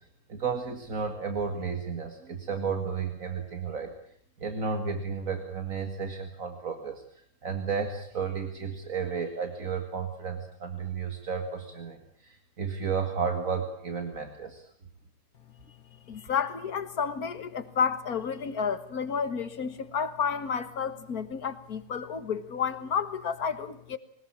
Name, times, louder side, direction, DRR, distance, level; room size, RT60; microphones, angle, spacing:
voice 1, 0.0-3.9 4.4-7.0 7.4-14.7, right 6 dB, 65° right, 5 dB, 2.4 m, -33 dB
voice 2, 16.1-24.0, left 6 dB, 85° left, 12 dB, 2.0 m, -31 dB
22.5 x 19.5 x 8.6 m, 0.62 s
omnidirectional pair, 1.5 m